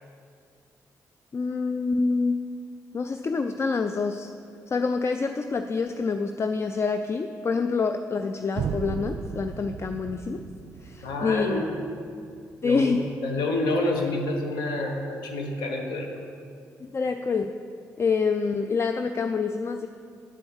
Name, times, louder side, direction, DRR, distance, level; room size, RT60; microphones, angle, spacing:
voice 1, 1.3-2.4 2.9-4.3 4.7-10.4 10.8-11.6 12.6-13.1 16.8-17.5 18.0-19.9, left 4 dB, 40° left, 8 dB, 0.4 m, -26 dB
sound 1, 8.6-12.5, right 6 dB, 70° right, 0.4 m, -35 dB
voice 2, 11.0-11.7 12.6-13.0 13.2-16.1, left 2 dB, 85° left, 2 dB, 1.0 m, -28 dB
9.2 x 4.4 x 7.1 m, 2.3 s
supercardioid pair, 50°, 7 cm